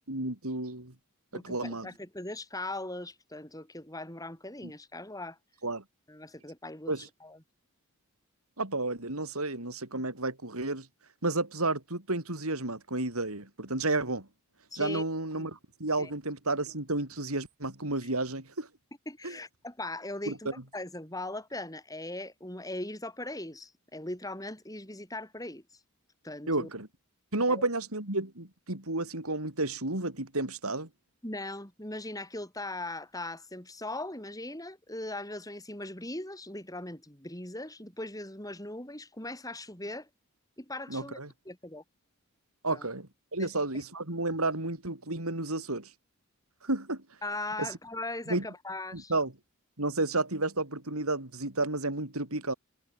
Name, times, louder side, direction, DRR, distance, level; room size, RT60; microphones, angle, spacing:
voice 1, 0.1-0.9 1.3-1.9 4.6-4.7 5.6-5.8 6.9-7.1 8.6-10.9 11.2-14.3 14.8-18.7 19.2-19.3 20.3-20.4 26.5-26.9 27.3-30.9 40.9-41.3 42.6-45.9 46.6-47.0 47.6-47.7 48.3-48.4 48.9-49.3 49.8-52.5, right 2 dB, 75° right, 5.0 m, -31 dB
voice 2, 1.3-5.4 6.1-7.4 14.7-15.0 15.3-15.5 16.0-16.1 18.0-18.1 19.1-25.8 26.2-26.7 27.5-27.6 31.2-40.1 40.6-41.2 41.5-41.8 42.7-42.9 43.4-43.5 47.2-49.1, left 2 dB, 15° left, 7.8 m, -39 dB
head